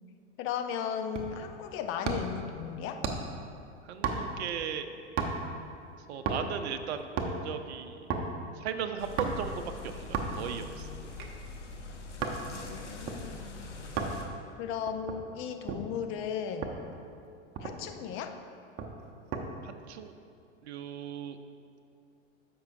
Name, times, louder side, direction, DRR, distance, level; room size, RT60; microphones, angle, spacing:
voice 1, 0.4-3.0 12.5-13.7 14.6-16.8 17.6-18.3, left 7 dB, 35° left, 6 dB, 0.6 m, -36 dB
sound 1, 1.1-1.5 2.0-2.4 3.0-3.4 4.0-4.5 5.2-5.6 6.2-6.6 7.0-7.4 8.1-8.3 9.2-9.5 10.1-10.5 11.1-12.4 13.1-13.2 14.0-14.2 14.9-15.9 16.6-16.8 17.2-17.3 17.5-18.0 18.8-19.5 19.8-20.1, right 5 dB, 40° right, 0.9 m, -34 dB
voice 2, 3.8-4.9 6.1-8.1 8.5-10.9 19.6-20.1 20.6-21.4, right 8 dB, 65° right, 8 dB, 0.6 m, -37 dB
sound 2, 9.0-14.3, left 3 dB, 90° left, 1.0 m, -43 dB
13.5 x 5.5 x 2.6 m, 2.4 s
hypercardioid pair, 95°, 35 cm